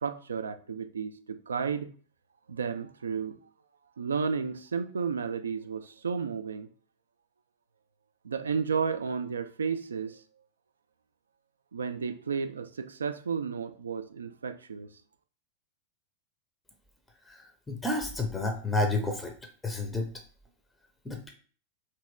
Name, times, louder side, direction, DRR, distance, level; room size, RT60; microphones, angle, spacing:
voice 1, 0.0-1.9 2.6-3.3 4.0-6.7 8.3-10.1 11.7-12.7 13.0-14.9, right 6 dB, 70° right, 0.3 m, -32 dB
voice 2, 17.3-19.3 19.6-20.1 21.1-21.3, left 2 dB, 10° left, 0.5 m, -30 dB
2.9 x 2.8 x 3.2 m
figure-of-eight pair, 90°, 0 cm